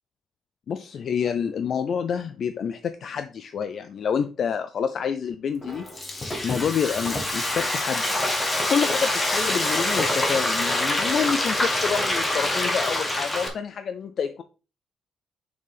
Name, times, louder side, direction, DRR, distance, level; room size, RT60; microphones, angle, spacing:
voice 1, 0.7-8.1 8.7-14.4, left 7 dB, 45° left, 10 dB, 0.4 m, -28 dB
Frying (food), 5.6-13.5, left 1 dB, 15° left, 1.2 m, -25 dB
6.5 x 5.5 x 3.4 m, 0.35 s
cardioid pair, 170°, 0 cm